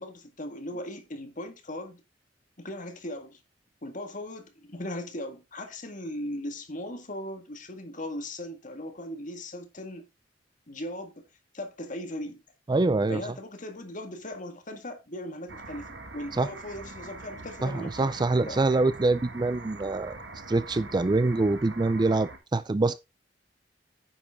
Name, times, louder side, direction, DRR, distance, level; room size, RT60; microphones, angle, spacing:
voice 1, 0.0-2.0 2.6-3.4 3.8-10.1 10.7-11.3 11.5-12.4 13.1-18.6, left 1 dB, 45° left, 1.9 m, -38 dB
voice 2, 12.7-13.2 16.4-16.5 17.6-20.2 20.5-23.0, right 2 dB, 25° right, 0.4 m, -25 dB
sound 1, 15.5-22.4, right 2 dB, 80° right, 2.0 m, -43 dB
9.8 x 6.9 x 3.6 m
head